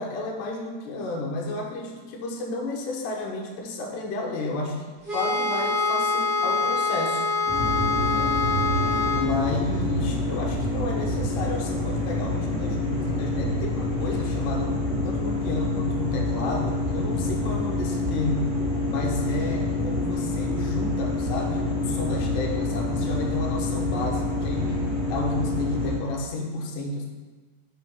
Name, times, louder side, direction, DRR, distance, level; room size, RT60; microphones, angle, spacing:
voice 1, 0.0-7.3 8.1-8.3 9.1-18.6 18.8-27.1, left 2 dB, 80° left, 0 dB, 2.4 m, -31 dB
sound 1, 5.1-9.3, left 3 dB, 45° right, 0.6 m, -25 dB
sound 2, 7.5-26.0, left 2 dB, 40° left, 1.1 m, -27 dB
6.4 x 3.4 x 4.5 m, 1.3 s
omnidirectional pair, 3.9 m